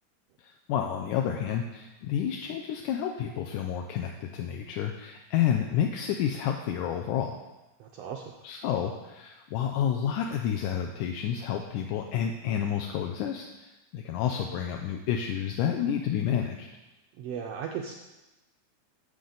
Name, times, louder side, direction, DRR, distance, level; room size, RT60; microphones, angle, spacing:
voice 1, 0.7-7.4 8.4-13.5 13.9-16.7, left 9 dB, 80° left, 3 dB, 2.0 m, -29 dB
voice 2, 7.8-8.4 17.2-17.9, right 7 dB, 90° right, 2 dB, 1.4 m, -36 dB
11.5 x 7.1 x 3.9 m, 1.0 s
omnidirectional pair, 3.6 m